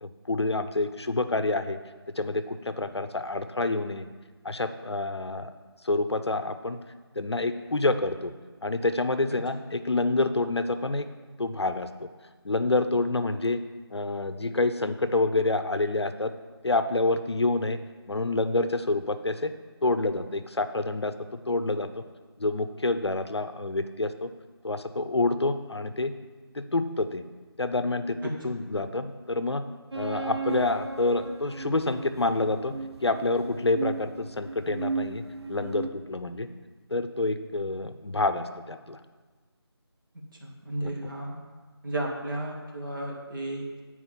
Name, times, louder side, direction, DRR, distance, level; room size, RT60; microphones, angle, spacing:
voice 1, 0.0-1.8 2.2-4.1 4.4-5.5 5.8-6.8 7.2-8.3 8.6-11.1 11.4-11.9 12.4-13.6 13.9-16.3 16.6-17.8 18.1-19.5 19.8-21.1 21.5-22.0 22.4-24.3 24.6-26.1 26.5-27.2 27.6-28.2 28.4-29.6 29.9-32.8 33.0-35.2 35.5-36.5 36.9-39.0 40.8-41.0, left 2 dB, 75° left, 10 dB, 0.6 m, -27 dB
voice 2, 28.2-28.5 40.4-41.4 41.8-43.8, right 1 dB, 50° right, -2 dB, 1.8 m, -33 dB
sound 1, 29.9-35.9, right 4 dB, 75° right, 0.7 m, -36 dB
8.6 x 4.6 x 5.7 m, 1.4 s
figure-of-eight pair, 160°, 14 cm